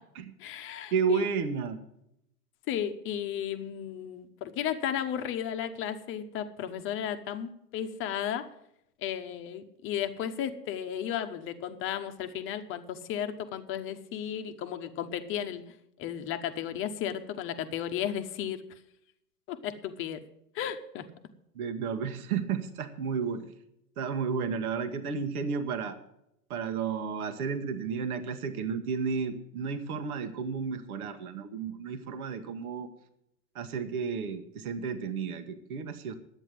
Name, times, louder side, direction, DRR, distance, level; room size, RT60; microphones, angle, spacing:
voice 1, 0.4-1.3 2.7-8.5 9.0-15.6 16.0-18.6 19.5-20.2 20.5-21.0, left 9 dB, 25° left, 8 dB, 1.0 m, -34 dB
voice 2, 0.9-1.8 21.5-23.5 24.0-26.0 26.5-32.9 33.5-36.2, right 5 dB, 60° right, 9 dB, 1.6 m, -32 dB
10.5 x 8.9 x 7.6 m, 0.79 s
hypercardioid pair, 120°, 48 cm